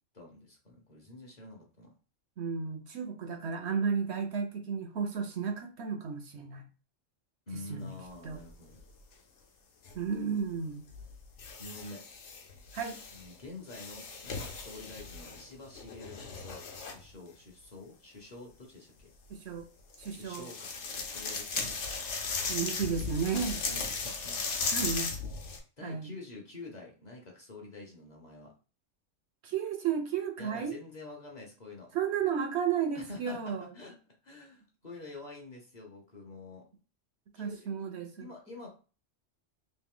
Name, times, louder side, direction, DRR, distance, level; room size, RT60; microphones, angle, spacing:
voice 1, 0.1-1.9 7.5-8.8 11.6-12.0 13.1-19.1 20.1-21.8 23.6-24.4 25.8-28.5 30.4-31.9 32.9-33.9 34.2-36.6 37.3-37.9 38.2-38.7, left 2 dB, 40° left, 0 dB, 0.8 m, -47 dB
voice 2, 2.4-6.7 7.7-7.9 8.2-8.4 9.9-10.9 12.7-13.0 19.3-19.7 20.0-20.5 22.5-23.6 24.7-25.1 25.8-26.1 29.4-30.8 31.9-33.7 37.4-38.3, right 6 dB, 65° right, 6 dB, 0.8 m, -33 dB
sound 1, 8.0-8.8 9.8-10.0 10.9-13.4 13.7-17.1 19.9-25.6, left 4 dB, 70° left, 1.0 m, -37 dB
3.2 x 2.6 x 3.6 m, 0.36 s
omnidirectional pair, 1.3 m